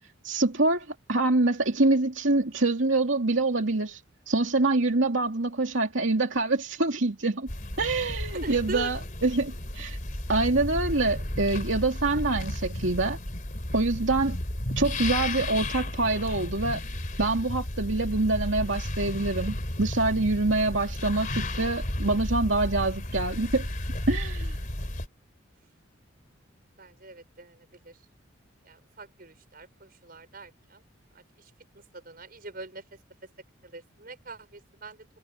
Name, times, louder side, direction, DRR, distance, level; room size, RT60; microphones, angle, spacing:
voice 1, 0.2-7.5 7.8-10.0 10.3-13.2 13.7-14.4 14.8-16.8 17.2-23.7 24.1-24.6, right 2 dB, 75° right, 2.5 m, -25 dB
sound 1, 7.5-25.1, left 1 dB, 45° left, 3.1 m, -33 dB
voice 2, 8.3-8.9 26.8-28.0 28.6-30.8 31.1-33.3 33.6-35.1, right 2 dB, 50° right, 5.6 m, -44 dB
head